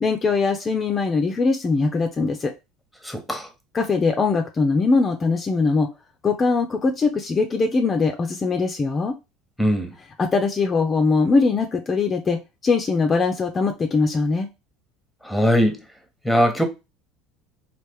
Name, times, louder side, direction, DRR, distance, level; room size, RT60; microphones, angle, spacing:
voice 1, 0.0-2.5 3.7-5.9 6.2-9.1 10.2-14.5, left 4 dB, 30° left, 0.5 m, -21 dB
voice 2, 3.0-3.5 9.6-9.9 15.3-15.8 16.2-16.6, equal, ahead, 0.9 m, -20 dB
3.2 x 2.4 x 3.4 m
supercardioid pair, 95°, 0 cm